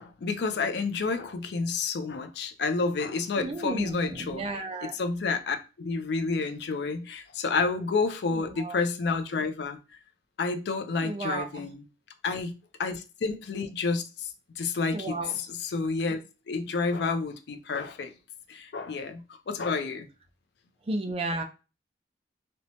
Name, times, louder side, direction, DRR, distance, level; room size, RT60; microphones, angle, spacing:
voice 1, 0.0-4.4 4.8-9.8 10.4-11.9 12.2-14.3 14.6-16.2 16.5-18.1 18.5-19.2 19.5-20.1, left 4 dB, 60° left, 0.4 m, -30 dB
voice 2, 3.4-4.9 8.3-8.8 11.0-11.7 14.9-15.3 20.9-21.4, right 2 dB, 30° right, 0.4 m, -33 dB
2.9 x 2.1 x 2.7 m
head